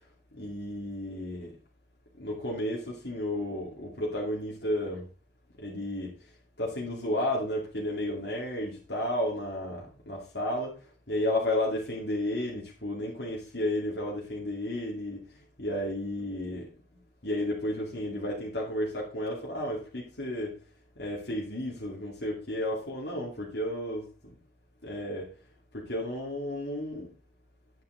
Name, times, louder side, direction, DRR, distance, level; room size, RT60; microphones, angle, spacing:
voice 1, 0.3-1.6 2.2-5.1 5.6-6.2 6.6-16.7 17.2-20.5 21.0-24.3 24.8-25.3 25.7-27.1, left 1 dB, 60° left, 2.5 m, -32 dB
9.6 x 9.2 x 3.8 m
head